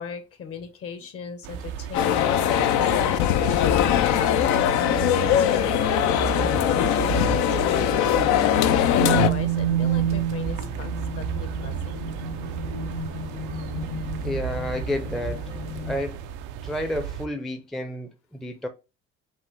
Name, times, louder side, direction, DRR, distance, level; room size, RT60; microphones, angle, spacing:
voice 1, 0.0-12.0, left 6 dB, 50° left, 1.0 m, -37 dB
sound 1, 1.4-17.3, right 8 dB, 90° right, 0.5 m, -33 dB
sound 2, 1.9-9.3, left 11 dB, 70° left, 0.5 m, -21 dB
sound 3, 9.0-16.0, right 6 dB, 85° left, 0.9 m, -29 dB
voice 2, 14.2-15.5 15.9-16.2 16.6-18.7, left 1 dB, ahead, 0.5 m, -30 dB
5.5 x 2.4 x 3.2 m
cardioid pair, 100°, 30 cm